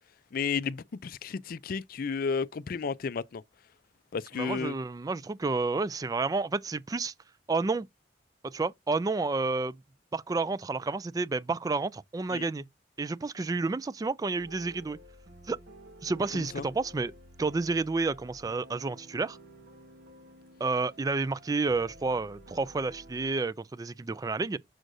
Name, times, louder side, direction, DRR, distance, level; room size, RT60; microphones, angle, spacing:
voice 1, 0.3-3.4 4.1-4.7 12.3-12.5 16.3-16.7, left 5 dB, 50° left, 0.4 m, -32 dB
voice 2, 4.3-7.1 7.5-7.9 8.4-9.8 10.1-12.6 13.0-15.0 15.5-15.6 16.0-17.1 17.4-19.4 20.6-24.6, right 3 dB, 20° right, 0.3 m, -30 dB
sound 1, 14.4-23.3, right 1 dB, 60° right, 1.4 m, -52 dB
6.4 x 6.3 x 2.6 m
head